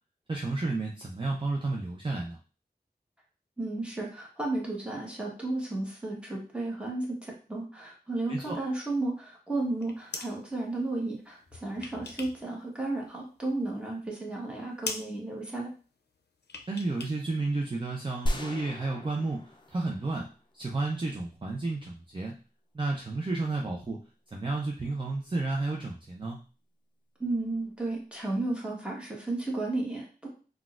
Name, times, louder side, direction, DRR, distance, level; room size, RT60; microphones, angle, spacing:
voice 1, 0.3-2.4 8.3-8.6 16.7-19.4 19.7-20.3 20.5-22.4 22.7-24.0 24.3-26.4, right 3 dB, 30° right, -1 dB, 0.5 m, -31 dB
voice 2, 3.6-15.7 27.2-30.3, right 2 dB, 5° right, -3 dB, 1.1 m, -33 dB
sound 1, 9.6-10.4 11.4-12.5 12.8-13.7 14.0-14.1 14.4-14.6 14.8-15.1 16.4-17.2 17.4-17.5, left 3 dB, 85° left, 0.5 m, -40 dB
sound 2, 18.3-20.5, equal, 30° left, 0.4 m, -35 dB
3.9 x 2.3 x 2.4 m, 0.36 s
wide cardioid pair, 60°, 17 cm